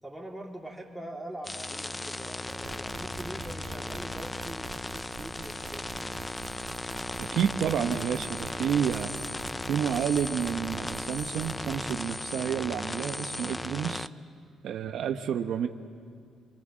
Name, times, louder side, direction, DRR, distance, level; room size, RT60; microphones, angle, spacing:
voice 1, 0.0-6.1, right 1 dB, ahead, -2 dB, 3.3 m, -43 dB
sound 1, 1.4-14.1, left 2 dB, 15° left, 0.5 m, -36 dB
sound 2, 2.5-12.0, right 5 dB, 55° right, 3.0 m, -46 dB
sound 3, 5.8-11.9, right 4 dB, 90° right, 2.0 m, -55 dB
voice 2, 7.2-9.2 9.7-14.1 14.6-15.7, right 8 dB, 70° right, 6 dB, 0.9 m, -29 dB
26.0 x 23.0 x 7.5 m, 2.2 s
cardioid pair, 90°, 0 cm